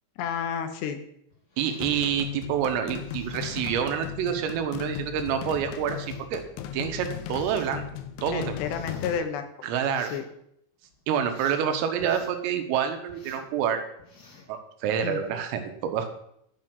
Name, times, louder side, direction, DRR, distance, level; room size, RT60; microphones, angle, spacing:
voice 1, 0.2-1.0 8.3-9.5 10.0-10.2 15.0-15.2, left 7 dB, 75° left, 7 dB, 2.8 m, -31 dB
sound 1, 1.3-2.2 2.9-3.7 4.6-4.7 5.5-6.3 7.0-7.8 8.3-9.2 9.8-10.3 10.8-11.6 12.0-12.4 13.1-13.5 14.0-14.5 15.0-15.3, left 2 dB, 55° left, 1.0 m, -51 dB
voice 2, 1.6-6.4 6.7-7.9 8.2-8.6 9.6-10.1 11.1-13.8 14.5-16.1, right 8 dB, 85° right, 7 dB, 4.0 m, -27 dB
sound 2, 1.8-9.2, left 10 dB, 90° left, 2.4 m, -37 dB
12.0 x 8.4 x 6.1 m, 0.74 s
omnidirectional pair, 5.8 m